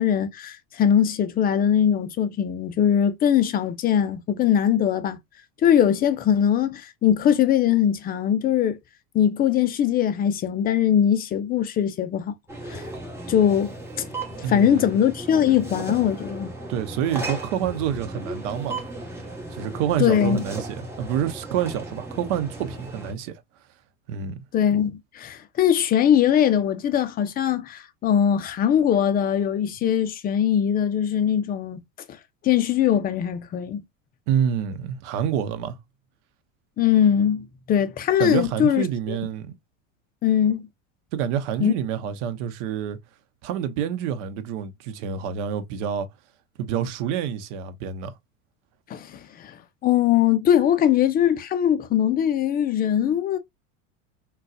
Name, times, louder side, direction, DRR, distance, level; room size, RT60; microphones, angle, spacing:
voice 1, 0.0-5.2 5.6-8.8 9.1-12.3 12.7-12.8 13.3-14.1 14.5-16.5 20.0-20.4 24.5-31.8 32.4-33.8 36.8-39.2 40.2-40.6 41.6-41.7 48.9-53.4, left 9 dB, 25° left, 0.4 m, -21 dB
sound 1, 12.5-23.1, right 2 dB, 5° right, 1.1 m, -35 dB
voice 2, 14.4-15.0 16.7-18.8 19.5-23.4 24.1-24.4 34.3-35.8 38.2-39.5 41.1-43.0 43.4-46.1 46.6-48.1, right 9 dB, 65° right, 0.8 m, -27 dB
3.9 x 2.3 x 2.3 m
hypercardioid pair, 100°, 40 cm